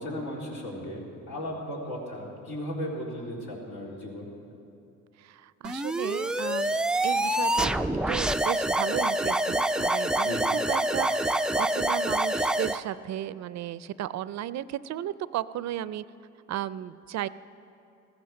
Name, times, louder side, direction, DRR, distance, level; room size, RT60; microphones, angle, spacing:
voice 1, 0.0-4.3 10.2-10.5, equal, 75° left, -3 dB, 3.8 m, -36 dB
voice 2, 5.2-7.7 8.1-16.0 16.5-17.3, right 12 dB, 65° right, 16 dB, 0.5 m, -34 dB
sound 1, 5.6-12.8, right 1 dB, 5° right, 0.3 m, -26 dB
15.5 x 14.0 x 6.4 m, 2.7 s
cardioid pair, 90°, 30 cm